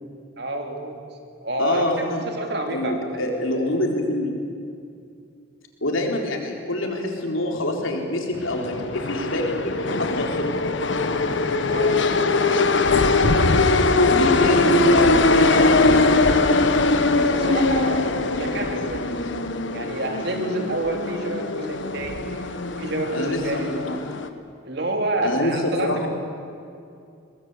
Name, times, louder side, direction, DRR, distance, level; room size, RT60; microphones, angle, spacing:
voice 1, 0.4-1.0 1.4-1.9 2.3-3.0 11.7-12.0 17.1-19.1 19.7-22.3 22.7-23.7 24.6-26.1, right 2 dB, 55° right, 3 dB, 2.9 m, -28 dB
voice 2, 1.6-2.2 2.7-4.3 5.8-10.7 14.1-16.3 23.1-24.0 25.2-26.1, left 1 dB, 90° left, 1 dB, 3.9 m, -25 dB
sound 1, 8.3-24.3, left 3 dB, 70° left, 1.2 m, -21 dB
23.0 x 20.0 x 8.2 m, 2.4 s
head